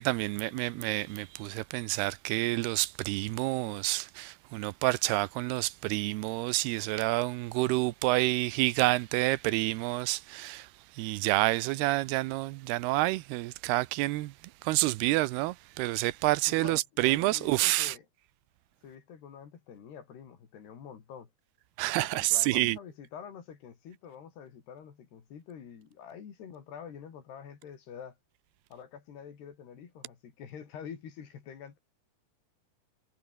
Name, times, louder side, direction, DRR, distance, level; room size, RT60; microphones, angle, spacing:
voice 1, 0.0-10.7 11.0-14.3 14.6-18.0 21.8-22.8, right 19 dB, 80° right, 2.7 m, -28 dB
voice 2, 16.5-18.1 18.8-21.3 22.0-28.2 28.7-31.8, left 7 dB, 80° left, 5.6 m, -47 dB
omnidirectional pair, 4.7 m